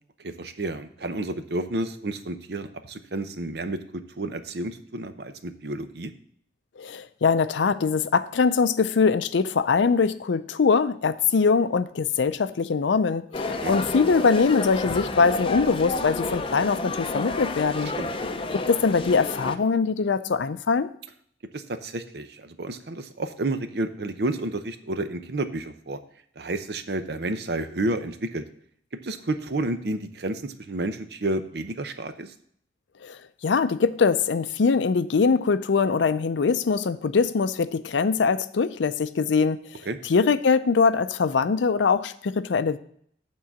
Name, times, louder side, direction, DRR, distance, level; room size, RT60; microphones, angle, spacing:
voice 1, 0.2-6.1 13.5-13.7 18.0-18.1 21.5-26.0 26.4-28.4 29.0-32.3 39.9-40.0, right 2 dB, 65° right, 9 dB, 0.7 m, -31 dB
voice 2, 6.8-17.9 18.5-20.9 33.0-33.2 33.4-39.6 40.1-42.8, left 5 dB, 90° left, 14 dB, 0.5 m, -22 dB
sound 1, 13.3-19.6, left 3 dB, 30° left, 0.5 m, -30 dB
8.6 x 3.8 x 7.0 m, 0.64 s
head